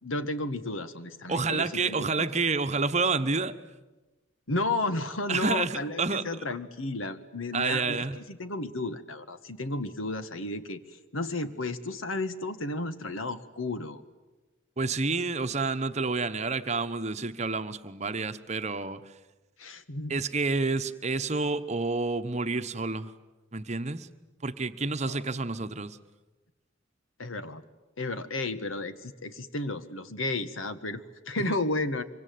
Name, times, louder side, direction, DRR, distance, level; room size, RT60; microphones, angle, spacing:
voice 1, 0.0-2.5 4.5-10.8 11.1-14.0 19.6-20.2 25.0-25.2 27.2-27.6 28.0-32.0, left 2 dB, 85° left, 11 dB, 1.6 m, -33 dB
voice 2, 1.3-3.6 5.3-6.4 7.5-8.2 14.8-19.1 20.1-23.1 23.5-24.1 24.4-26.0 31.5-31.6, right 4 dB, 35° right, 10 dB, 1.0 m, -29 dB
25.5 x 24.5 x 9.4 m, 1.1 s
head